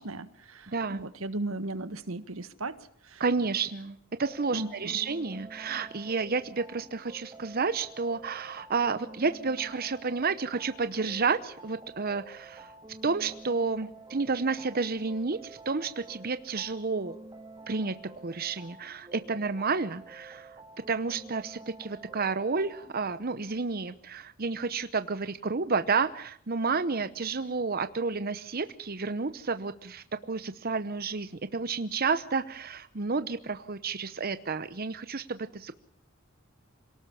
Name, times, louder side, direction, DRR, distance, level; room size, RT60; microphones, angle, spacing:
voice 1, 0.0-2.8 3.0-3.2 4.5-5.0, right 2 dB, 75° right, 13 dB, 1.5 m, -36 dB
voice 2, 0.7-1.0 3.2-12.7 13.0-17.1 17.7-18.0 18.2-20.6 20.9-35.7, right 4 dB, 45° right, 11 dB, 0.9 m, -31 dB
sound 1, 4.2-23.2, right 2 dB, 20° right, 1.9 m, -49 dB
27.0 x 18.5 x 7.0 m, 0.64 s
head